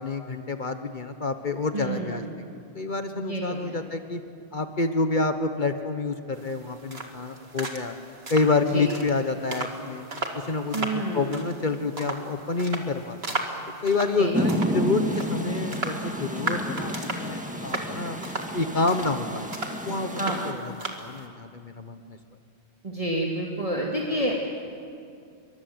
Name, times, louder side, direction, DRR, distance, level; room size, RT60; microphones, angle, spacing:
voice 1, 0.0-2.2 2.7-4.2 4.5-8.0 8.3-10.0 10.3-13.2 13.8-16.9 17.2-18.2 18.5-19.5 19.8-20.1 20.5-20.7 21.0-22.2, left 3 dB, 45° left, 8 dB, 1.2 m, -28 dB
voice 2, 1.7-2.3 3.1-3.8 8.7-8.9 10.7-11.4 14.2-14.3 20.2-20.4 22.8-24.4, right 1 dB, 30° right, -2 dB, 2.4 m, -29 dB
sound 1, 6.3-21.3, right 2 dB, 65° right, 2.5 m, -37 dB
Rain, 14.3-20.5, equal, 5° right, 1.8 m, -30 dB
27.5 x 23.0 x 8.0 m, 2.4 s
omnidirectional pair, 1.1 m